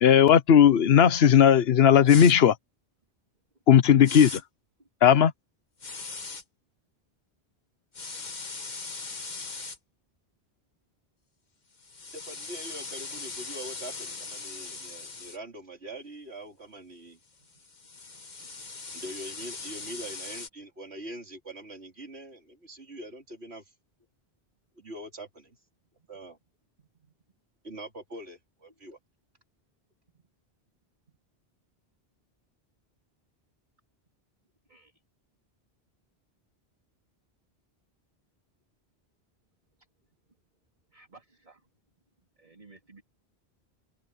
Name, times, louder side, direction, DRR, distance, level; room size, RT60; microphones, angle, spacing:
voice 1, 0.0-2.5 3.7-4.4 5.0-5.3, left 9 dB, 70° left, 1.1 m, -17 dB
sound 1, 2.1-2.4 4.0-4.4 5.8-6.4 7.9-9.8 11.8-15.4 17.5-20.5, left 4 dB, 45° left, 1.5 m, -39 dB
voice 2, 12.1-17.2 18.9-23.7 24.8-25.6 26.1-26.4 27.6-29.0, right 1 dB, 80° right, 3.9 m, -43 dB
voice 3, 26.8-27.1 30.1-30.2 34.7-35.0 40.9-41.7 42.4-43.0, right 3 dB, 45° right, 3.8 m, -56 dB
open air
omnidirectional pair, 1.1 m